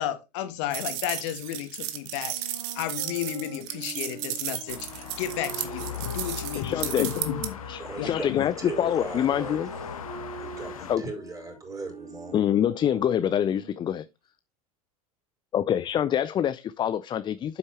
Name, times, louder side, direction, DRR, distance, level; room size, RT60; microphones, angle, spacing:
voice 1, 0.0-2.4 2.8-7.6 8.0-8.5, left 12 dB, 55° left, 1.9 m, -33 dB
sound 1, 0.7-7.5, right 12 dB, 50° right, 1.6 m, -34 dB
sound 2, 2.2-7.8 8.5-14.1, right 3 dB, 80° right, 2.5 m, -43 dB
sound 3, 4.7-11.0, left 9 dB, 70° left, 1.2 m, -39 dB
voice 2, 6.5-7.1 7.7-9.7 10.9-11.0 12.3-14.0 15.5-17.6, left 10 dB, 25° left, 0.5 m, -26 dB
voice 3, 7.8-10.0 10.4-12.4, right 2 dB, 20° right, 4.9 m, -39 dB
9.8 x 8.0 x 3.1 m
figure-of-eight pair, 75°, 18 cm